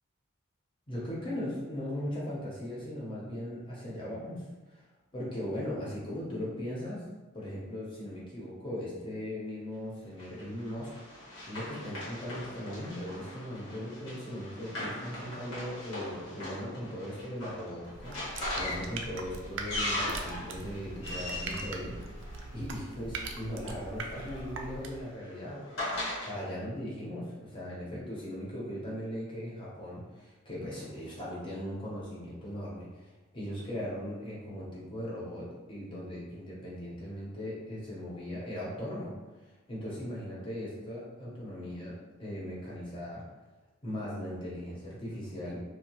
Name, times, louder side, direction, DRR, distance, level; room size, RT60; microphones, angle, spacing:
voice 1, 0.9-4.8 5.1-7.0 7.3-22.1 22.5-25.8 26.3-39.1 39.7-43.2 43.8-45.6, equal, 25° left, -6 dB, 0.7 m, -39 dB
Run, 10.2-22.8 23.8-26.3, left 1 dB, 80° left, 1.1 m, -39 dB
sound 1, 17.9-25.1, right 3 dB, 60° right, 0.3 m, -41 dB
2.7 x 2.1 x 2.9 m, 1.2 s
head